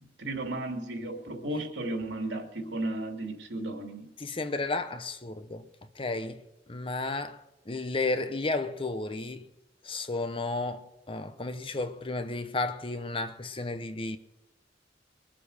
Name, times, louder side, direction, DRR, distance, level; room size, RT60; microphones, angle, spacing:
voice 1, 0.2-4.1, right 1 dB, 80° right, 2.8 m, -34 dB
voice 2, 4.2-5.7 6.0-6.4 6.7-9.5 9.8-14.2, left 2 dB, 30° left, 0.8 m, -33 dB
22.5 x 7.7 x 6.6 m
head